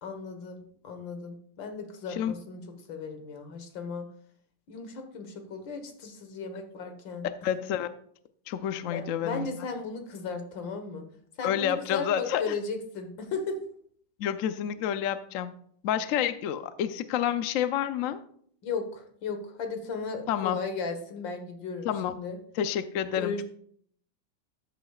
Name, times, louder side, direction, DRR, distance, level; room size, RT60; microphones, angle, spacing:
voice 1, 0.0-2.6 2.9-4.1 4.7-7.3 8.9-11.1 11.4-13.6 18.6-22.4 23.2-23.4, left 4 dB, 85° left, 6 dB, 2.0 m, -36 dB
voice 2, 7.4-7.9 8.5-9.5 11.4-12.5 14.2-15.5 15.8-18.2 20.3-20.6 21.8-22.2 22.6-23.4, left 10 dB, 70° left, 11 dB, 0.8 m, -29 dB
13.0 x 8.3 x 2.4 m, 0.62 s
omnidirectional pair, 2.0 m